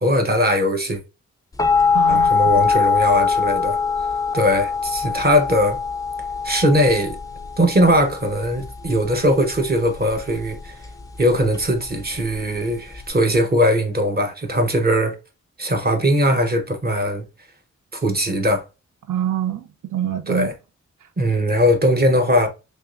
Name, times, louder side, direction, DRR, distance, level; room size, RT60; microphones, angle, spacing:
voice 1, 0.0-1.0 2.1-3.8 4.3-5.8 6.4-7.2 7.6-10.7 11.2-15.2 15.6-17.2 17.9-18.6 20.3-20.5 21.2-22.5, equal, 30° right, 0.8 m, -19 dB
sound 1, 1.6-13.1, left 5 dB, 10° left, 0.3 m, -23 dB
voice 2, 1.9-2.5 19.1-20.5, right 10 dB, 80° right, 0.6 m, -26 dB
3.5 x 3.0 x 2.4 m
wide cardioid pair, 135°, 30 cm